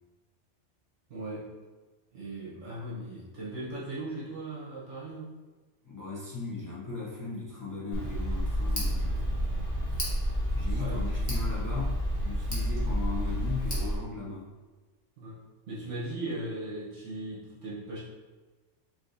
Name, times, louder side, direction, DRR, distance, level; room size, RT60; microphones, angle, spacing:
voice 1, 1.1-1.5 2.1-5.3 10.7-11.1 15.2-15.4 15.7-18.0, right 1 dB, 65° right, -6 dB, 1.2 m, -38 dB
voice 2, 5.8-9.2 10.5-11.9 12.2-14.5, left 4 dB, 20° left, -6 dB, 0.6 m, -37 dB
Tick, 7.9-14.0, equal, 35° left, 1.1 m, -30 dB
5.2 x 3.0 x 2.6 m, 1.2 s
omnidirectional pair, 1.3 m